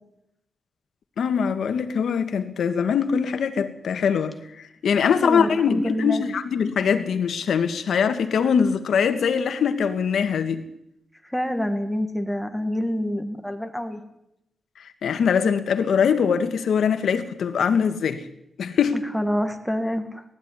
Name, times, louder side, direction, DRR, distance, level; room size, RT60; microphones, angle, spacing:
voice 1, 1.2-10.6 15.0-18.2 18.6-19.0, left 7 dB, 75° left, 1.8 m, -22 dB
voice 2, 5.2-6.2 11.2-14.0 18.9-20.2, equal, ahead, 1.9 m, -27 dB
19.0 x 14.0 x 10.0 m
wide cardioid pair, 155°, 0 cm